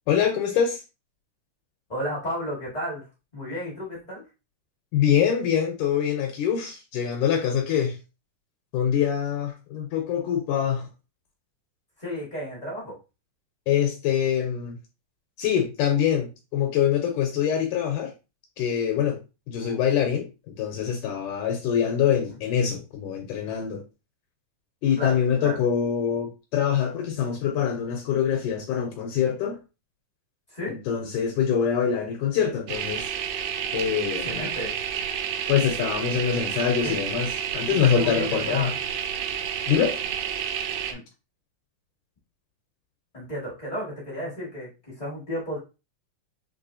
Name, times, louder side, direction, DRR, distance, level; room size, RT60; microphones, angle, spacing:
voice 1, 0.1-0.8 4.9-8.0 8.7-10.9 13.7-14.8 15.4-18.1 18.6-19.2 19.5-23.8 24.8-29.6 30.7-33.1 33.7-34.5 35.5-38.7 39.7-40.0, left 8 dB, 80° left, 2.0 m, -24 dB
voice 2, 1.9-3.0 3.3-4.2 12.0-13.0 19.6-19.8 22.3-22.4 25.0-25.6 30.5-30.7 34.2-34.7 36.8-37.0 37.8-38.7 40.9-41.0 43.1-45.6, equal, 45° left, 0.5 m, -33 dB
sound 1, 32.7-40.9, right 9 dB, 85° right, 2.3 m, -30 dB
6.0 x 3.3 x 2.6 m
omnidirectional pair, 4.0 m